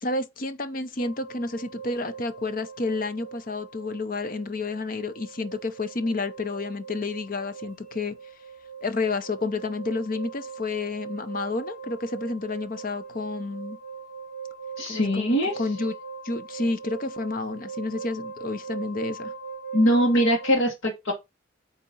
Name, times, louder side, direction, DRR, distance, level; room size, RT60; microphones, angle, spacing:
voice 1, 0.0-8.1 8.8-13.8 14.9-15.9 16.2-19.3, left 3 dB, 45° left, 0.7 m, -30 dB
sound 1, 1.0-20.5, right 6 dB, 5° left, 2.0 m, -40 dB
voice 2, 14.8-15.6 19.7-21.1, equal, 90° left, 1.5 m, -22 dB
8.5 x 3.0 x 5.3 m
head